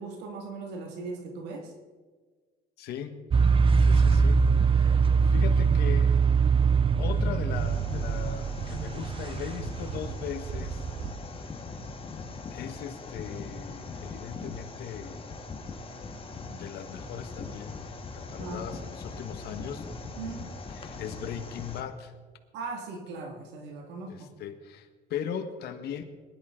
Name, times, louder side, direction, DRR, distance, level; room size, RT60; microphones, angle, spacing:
voice 1, 0.0-1.7 18.4-18.6 20.1-20.5 22.5-24.3, right 3 dB, 90° right, 2 dB, 2.0 m, -38 dB
voice 2, 2.8-3.2 3.8-6.2 7.0-10.8 12.5-15.2 16.5-17.9 18.1-19.9 20.7-22.1 24.1-26.0, left 8 dB, 75° left, 7 dB, 1.4 m, -39 dB
sound 1, 3.3-11.1, right 5 dB, 30° right, 0.7 m, -23 dB
sound 2, 7.5-21.8, left 3 dB, 30° left, 1.7 m, -41 dB
21.0 x 11.5 x 3.8 m, 1.4 s
cardioid pair, 110°, 17 cm